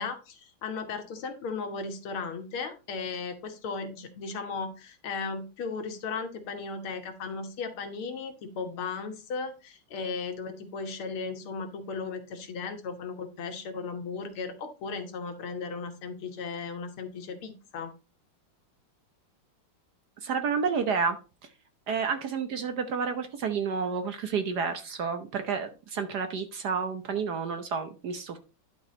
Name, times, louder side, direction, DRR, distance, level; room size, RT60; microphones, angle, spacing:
voice 1, 0.0-17.9, left 4 dB, 75° left, 7 dB, 2.1 m, -36 dB
voice 2, 20.2-21.2 21.9-28.4, right 5 dB, 60° right, 8 dB, 1.2 m, -30 dB
11.0 x 4.7 x 4.3 m, 0.31 s
omnidirectional pair, 2.4 m